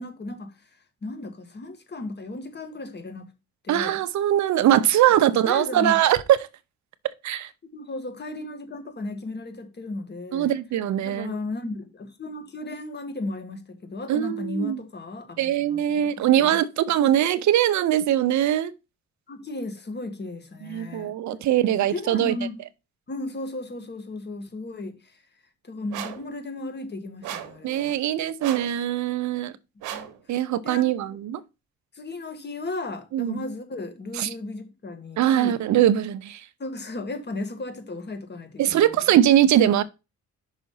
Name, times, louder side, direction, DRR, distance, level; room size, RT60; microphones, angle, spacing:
voice 1, 0.0-3.3 3.6-4.0 5.2-6.0 7.7-10.5 11.0-16.1 16.4-16.6 19.3-22.6 23.1-25.2 25.6-28.0 29.9-30.4 30.6-30.9 31.9-35.6 36.6-39.1, left 2 dB, 35° left, 1.7 m, -35 dB
voice 2, 3.7-6.5 7.2-7.5 10.3-11.3 14.1-14.8 15.4-18.7 20.7-22.3 27.6-29.5 30.3-31.4 33.1-33.4 34.1-34.3 35.2-36.5 38.6-39.8, right 11 dB, 70° right, 0.7 m, -21 dB
sound 1, 25.9-26.3 27.2-27.6 28.4-28.8 29.8-30.2, right 11 dB, 90° right, 1.1 m, -35 dB
5.7 x 4.1 x 5.6 m
cardioid pair, 90°, 30 cm